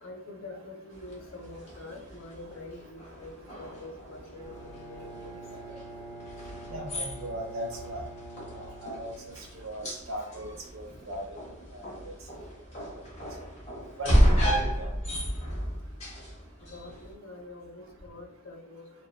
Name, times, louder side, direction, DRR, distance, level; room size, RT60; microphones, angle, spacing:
voice 1, 0.0-3.3 3.6-5.4 16.7-18.8, left 2 dB, 60° left, 3 dB, 0.5 m, -45 dB
sound 1, 0.9-17.1, equal, 30° left, 0.9 m, -32 dB
Bowed string instrument, 4.3-9.8, right 2 dB, 20° right, 0.4 m, -46 dB
voice 2, 6.7-8.0 8.6-11.2 11.7-11.9 12.8-12.9 14.0-14.1 14.4-14.9, right 1 dB, 70° right, 2 dB, 0.6 m, -38 dB
2.8 x 2.1 x 2.2 m, 0.67 s
head